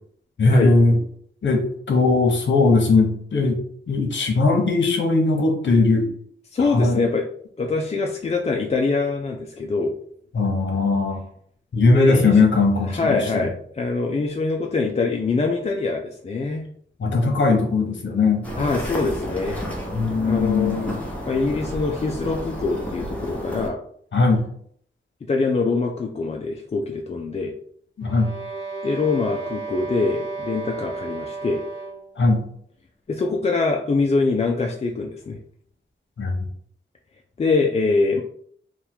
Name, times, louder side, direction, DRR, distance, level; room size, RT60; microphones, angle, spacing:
voice 1, 0.4-1.0 1.4-3.6 3.9-6.1 6.6-7.0 10.3-11.2 11.7-13.5 17.0-18.5 19.9-20.8 24.1-24.4 28.0-28.3 32.2-32.4 36.2-36.3, left 3 dB, 65° left, 2 dB, 0.9 m, -19 dB
voice 2, 6.5-7.3 7.6-9.9 11.9-12.4 12.9-16.7 18.6-19.6 20.2-23.8 25.3-27.5 28.8-31.6 33.1-35.4 37.4-38.2, left 3 dB, 30° left, 1 dB, 0.3 m, -23 dB
sound 1, 18.4-23.7, equal, 5° left, 1.0 m, -31 dB
sound 2, 28.0-32.2, right 4 dB, 85° right, 1.0 m, -33 dB
3.6 x 2.3 x 4.4 m, 0.64 s
wide cardioid pair, 150°, 21 cm